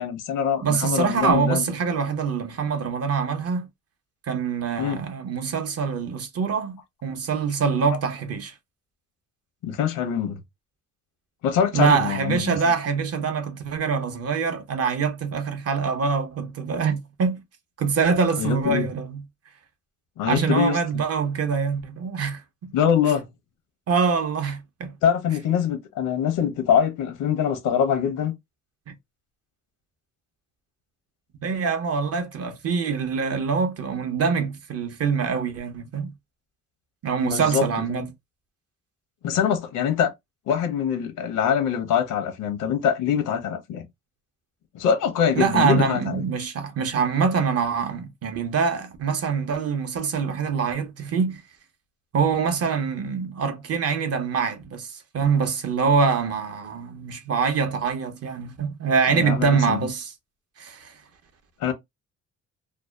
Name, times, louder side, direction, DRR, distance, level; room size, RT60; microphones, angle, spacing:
voice 1, 0.0-1.7 4.8-5.0 9.6-10.4 11.4-12.6 18.4-18.9 20.2-21.0 22.7-23.3 25.0-28.3 37.2-38.1 39.2-40.1 40.5-43.9 44.7-46.2 59.1-59.8 61.6-61.7, left 8 dB, 85° left, 0.8 m, -24 dB
voice 2, 0.6-3.7 4.3-8.5 11.7-17.4 17.8-19.2 20.3-22.7 23.9-24.9 28.9-29.0 31.4-36.1 37.0-38.0 45.4-51.4 52.1-60.1 60.6-60.9, right 5 dB, 55° right, 0.7 m, -24 dB
2.6 x 2.2 x 2.2 m
cardioid pair, 90°, 30 cm